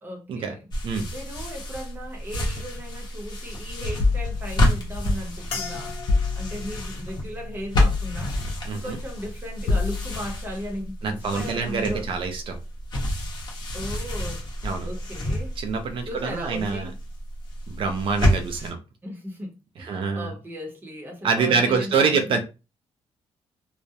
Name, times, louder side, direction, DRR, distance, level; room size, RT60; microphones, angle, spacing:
voice 1, 0.0-0.7 1.1-6.0 6.4-8.4 8.7-12.1 13.7-14.5 14.8-15.6 16.1-16.9 19.0-22.4, equal, 20° right, 0.7 m, -36 dB
sound 1, 0.7-18.7, equal, 45° left, 0.8 m, -30 dB
sound 2, 4.0-5.4 6.1-6.9 7.7-8.6 9.7-10.5, left 3 dB, 60° left, 0.4 m, -26 dB
sound 3, 5.5-10.0 10.4-11.0 11.6-11.8, left 5 dB, 80° left, 0.8 m, -41 dB
voice 2, 8.7-9.0 11.0-12.6 14.6-14.9 15.6-16.9 17.7-18.8 19.8-20.3 21.2-22.4, right 5 dB, 55° right, 0.4 m, -25 dB
2.2 x 2.0 x 2.7 m
wide cardioid pair, 160°, 10 cm